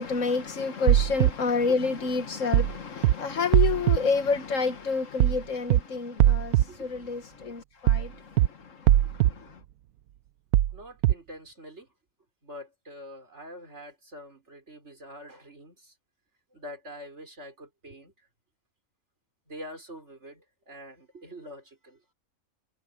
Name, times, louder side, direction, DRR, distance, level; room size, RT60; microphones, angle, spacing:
voice 1, 0.0-9.6, left 4 dB, 65° left, 1.6 m, -29 dB
sound 1, 0.9-1.3 2.5-2.7 3.0-3.1 3.5-4.0 5.2-5.4 5.7-5.8 6.2-6.6 7.9-8.1 8.4-8.5 8.9-9.3 10.5-10.7 11.0-11.1, right 13 dB, 80° right, 1.0 m, -20 dB
voice 2, 6.7-7.1 10.7-11.9 12.4-15.9 16.5-18.1 19.5-22.0, equal, 50° right, 5.7 m, -45 dB
omnidirectional pair, 1.5 m